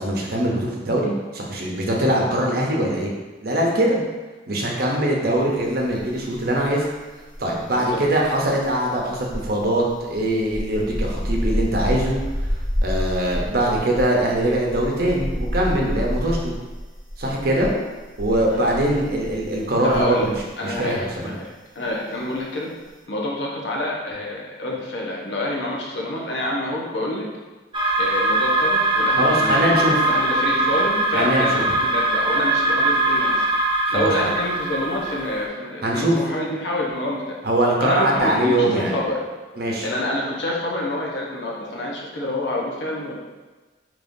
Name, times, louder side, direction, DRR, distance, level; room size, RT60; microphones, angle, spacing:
voice 1, 0.0-3.1 3.4-4.0 4.5-6.9 7.4-12.2 12.8-16.5 17.2-17.7 18.2-20.2 20.6-21.3 29.2-29.9 31.1-31.6 33.9-34.1 35.8-36.2 37.4-39.0 39.6-39.9, right 1 dB, 55° right, -2 dB, 0.8 m, -22 dB
sound 1, 5.9-6.7 6.9-20.5 20.7-21.0, equal, 15° left, 1.3 m, -29 dB
voice 2, 19.8-20.3 20.6-22.7 23.1-27.3 28.0-33.5 33.9-37.4 37.8-39.2 39.8-43.1, left 1 dB, 75° left, -2 dB, 0.9 m, -27 dB
sound 2, 27.7-35.5, right 2 dB, 25° right, 0.5 m, -21 dB
5.2 x 3.0 x 2.6 m, 1.2 s
head